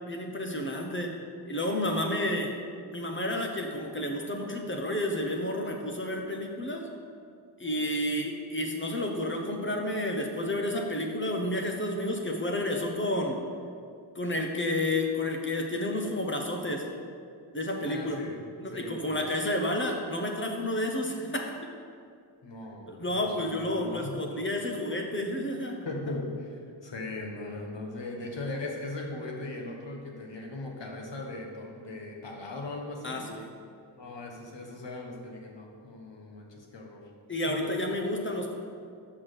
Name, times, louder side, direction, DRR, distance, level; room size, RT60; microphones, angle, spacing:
voice 1, 0.1-1.1 1.4-2.5 2.9-6.9 7.6-13.4 14.1-16.8 17.5-18.2 18.6-21.5 22.9-25.8 33.0-33.5 37.3-38.5, left 1 dB, 25° left, 2 dB, 1.0 m, -30 dB
voice 2, 7.6-8.0 17.8-18.3 18.7-19.1 22.4-24.2 25.8-33.2 34.0-37.0 37.4-37.7, left 2 dB, 60° left, 0 dB, 1.4 m, -39 dB
6.3 x 5.9 x 6.6 m, 2.3 s
wide cardioid pair, 125°, 48 cm